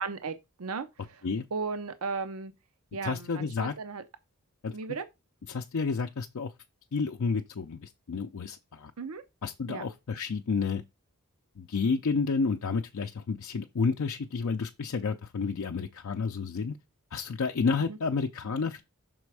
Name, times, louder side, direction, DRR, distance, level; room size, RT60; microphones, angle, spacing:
voice 1, 0.0-1.2 1.5-2.5 2.9-4.0 4.7-5.1 9.0-9.2 9.7-9.8 17.9-18.0, right 4 dB, 70° right, 0.6 m, -35 dB
voice 2, 3.0-3.7 4.6-4.7 5.5-6.5 6.9-8.9 9.4-10.8 11.6-16.8 17.1-18.8, left 5 dB, 65° left, 0.5 m, -30 dB
6.1 x 4.2 x 4.7 m
head